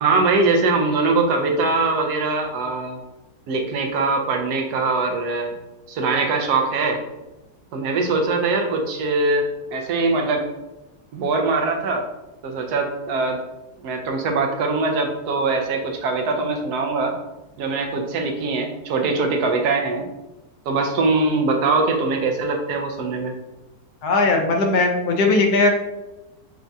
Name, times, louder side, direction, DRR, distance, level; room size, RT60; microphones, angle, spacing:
voice 1, 0.0-3.0 3.5-5.5 5.9-7.0 7.7-10.5 11.1-12.0 12.4-13.4 13.8-17.2 17.6-20.0 20.7-23.3, right 3 dB, 85° right, 3 dB, 1.2 m, -22 dB
voice 2, 24.0-25.7, left 3 dB, 85° left, 2 dB, 1.2 m, -18 dB
6.1 x 2.3 x 2.6 m, 0.99 s
omnidirectional pair, 1.7 m